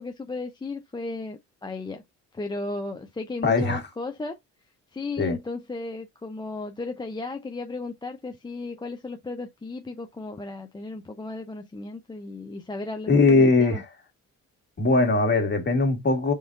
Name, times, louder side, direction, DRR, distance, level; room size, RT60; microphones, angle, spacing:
voice 1, 0.0-2.0 2.3-4.4 4.9-13.8, left 3 dB, 15° left, 0.6 m, -35 dB
voice 2, 3.4-3.8 5.2-5.4 13.1-13.9 14.8-16.3, left 3 dB, 35° left, 1.8 m, -20 dB
5.5 x 3.6 x 2.5 m
cardioid pair, 90°, 30 cm